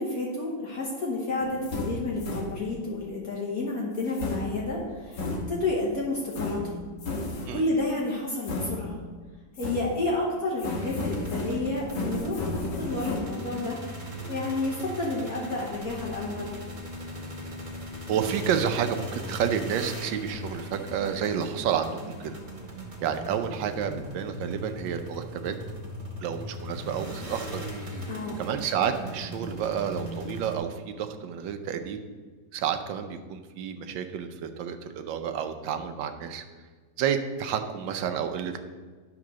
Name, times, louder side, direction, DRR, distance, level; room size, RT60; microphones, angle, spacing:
voice 1, 0.0-6.7 7.5-9.0 9.6-13.8 14.3-16.6 28.1-28.4, left 2 dB, 50° left, -3 dB, 1.6 m, -30 dB
sound 1, 1.4-2.9 4.0-5.9 6.3-7.7 8.4-9.2 9.6-10.2 10.6-13.2, left 2 dB, 65° left, 1.9 m, -34 dB
sound 2, 10.8-30.6, equal, 25° right, 1.6 m, -39 dB
voice 2, 18.1-22.4 23.0-25.5 26.2-27.9 28.4-32.0 32.5-36.4 37.0-38.6, right 8 dB, 75° right, 7 dB, 1.4 m, -30 dB
11.0 x 3.8 x 6.1 m, 1.5 s
omnidirectional pair, 2.1 m